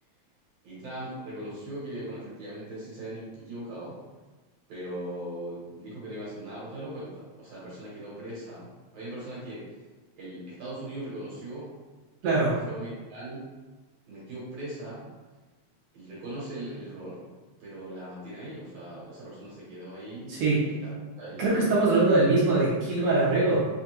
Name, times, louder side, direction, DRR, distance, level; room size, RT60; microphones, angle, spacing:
voice 1, 0.6-4.0 4.7-8.7 8.9-9.6 10.1-11.7 12.2-13.5 14.1-15.1 15.9-17.3 17.6-20.9 21.2-21.9, right 1 dB, 65° right, -8 dB, 2.0 m, -39 dB
voice 2, 12.2-12.6 20.3-20.7 21.4-23.7, right 2 dB, 85° right, -7 dB, 1.3 m, -22 dB
4.9 x 2.3 x 2.9 m, 1.2 s
omnidirectional pair, 3.5 m